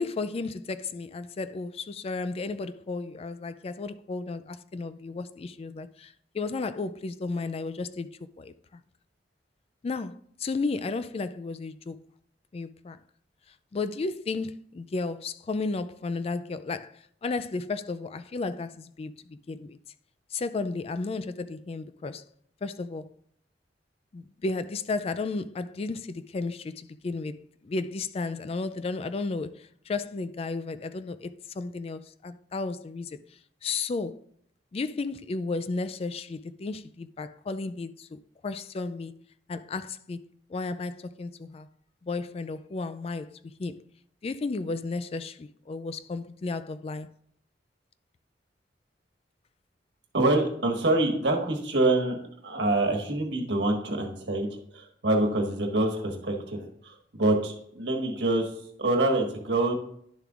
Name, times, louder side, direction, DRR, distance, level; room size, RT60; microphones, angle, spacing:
voice 1, 0.0-8.8 9.8-12.0 12.5-13.0 13.7-19.8 20.3-22.3 22.6-23.2 24.1-33.2 33.6-34.2 34.7-39.2 39.5-41.7 42.0-43.8 44.2-47.1, left 3 dB, 35° left, 0.3 m, -33 dB
voice 2, 50.1-52.2 52.4-58.5 58.8-59.7, right 2 dB, 75° right, 1.5 m, -26 dB
11.0 x 6.8 x 2.4 m
head